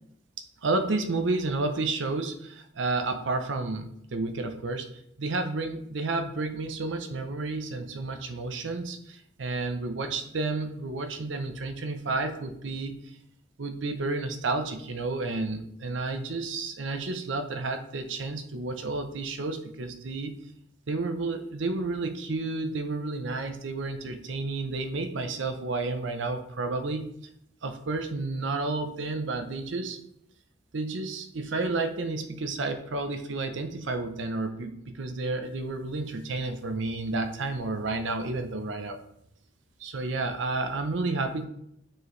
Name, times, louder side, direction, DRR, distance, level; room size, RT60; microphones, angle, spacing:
voice 1, 0.6-12.9 13.6-20.4 20.9-27.1 27.6-30.0 30.7-39.0 39.8-41.4, right 3 dB, 75° right, 7 dB, 0.6 m, -31 dB
7.5 x 4.6 x 3.2 m, 0.74 s
head